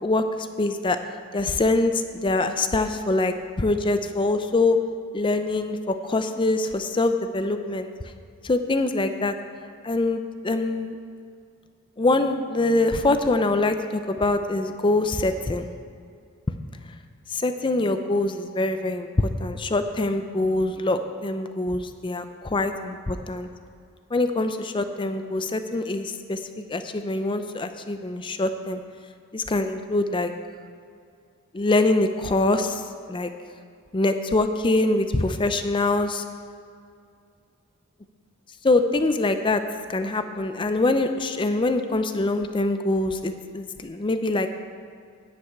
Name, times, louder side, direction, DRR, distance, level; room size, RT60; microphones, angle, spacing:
voice 1, 0.0-1.0 1.3-4.8 5.1-7.9 8.4-9.4 9.8-11.0 12.0-15.7 17.3-23.5 24.1-28.8 29.3-30.3 31.5-33.3 33.9-36.2 38.6-39.6 39.9-44.5, left 2 dB, 20° left, 8 dB, 0.5 m, -24 dB
10.5 x 5.5 x 8.5 m, 2.3 s
head